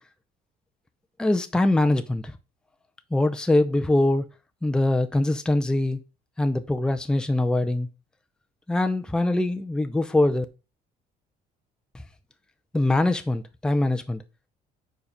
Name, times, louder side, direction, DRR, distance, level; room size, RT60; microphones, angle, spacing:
voice 1, 1.2-2.3 3.1-4.2 4.6-6.0 6.4-7.9 8.7-10.5 12.7-14.2, left 2 dB, 5° left, 0.6 m, -23 dB
5.1 x 4.7 x 5.3 m
cardioid pair, 110°, 17 cm